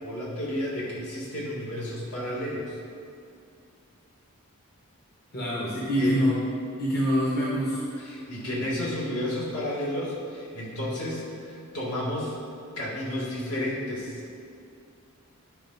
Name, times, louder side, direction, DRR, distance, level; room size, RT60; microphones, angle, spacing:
voice 1, 0.0-2.8 6.0-6.3 8.0-12.4 12.7-14.2, left 1 dB, 70° left, -5 dB, 2.0 m, -32 dB
voice 2, 5.3-6.4 6.8-7.8 8.4-8.6, equal, 45° left, -6 dB, 1.2 m, -25 dB
10.0 x 4.9 x 4.0 m, 2.4 s
head